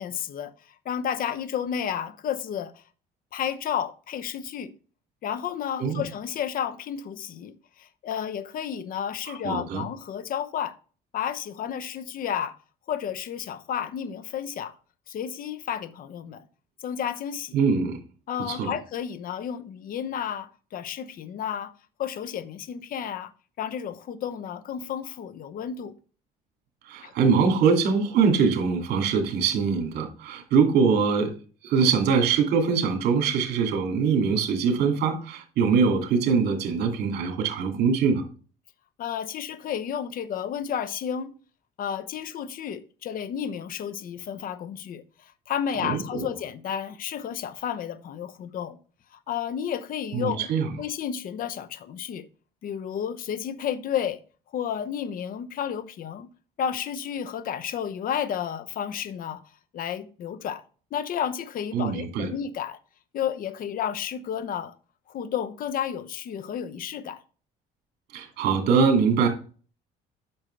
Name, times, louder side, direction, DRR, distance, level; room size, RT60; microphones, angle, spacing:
voice 1, 0.0-2.8 3.3-4.7 5.2-10.7 11.1-12.6 12.9-14.7 15.1-16.5 16.8-17.6 18.3-21.7 22.0-23.3 23.6-25.9 27.0-27.1 39.0-41.4 41.8-48.8 49.1-50.5 50.8-52.3 52.6-54.2 54.5-56.3 56.6-59.4 59.7-60.6 60.9-62.8 63.1-64.7 65.1-67.2, left 8 dB, 55° left, 0.8 m, -32 dB
voice 2, 9.3-9.8 17.5-18.0 18.5-18.7 26.9-31.4 31.6-38.2 45.8-46.3 50.1-50.7 61.7-62.3 68.1-69.3, right 5 dB, 75° right, 2.5 m, -23 dB
8.7 x 6.2 x 3.3 m
cardioid pair, 110°, 17 cm